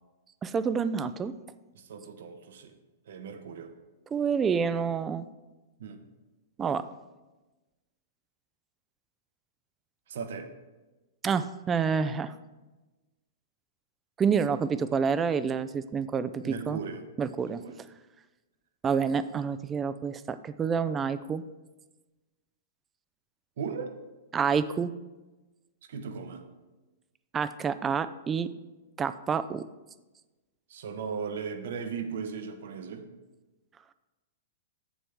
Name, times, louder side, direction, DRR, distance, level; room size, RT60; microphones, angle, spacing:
voice 1, 0.4-1.3 4.1-5.3 6.6-6.8 11.2-12.3 14.2-16.8 17.2-17.6 18.8-21.4 24.3-24.9 27.3-28.5 29.0-29.6, right 6 dB, 20° right, 13 dB, 0.3 m, -28 dB
voice 2, 1.7-2.7 3.1-3.7 5.8-6.0 10.1-10.5 16.4-17.0 17.4-17.8 23.6-23.9 25.9-26.4 30.7-33.0, right 6 dB, 70° right, 7 dB, 0.9 m, -37 dB
7.6 x 7.0 x 3.6 m, 1.1 s
hypercardioid pair, 140°, 0 cm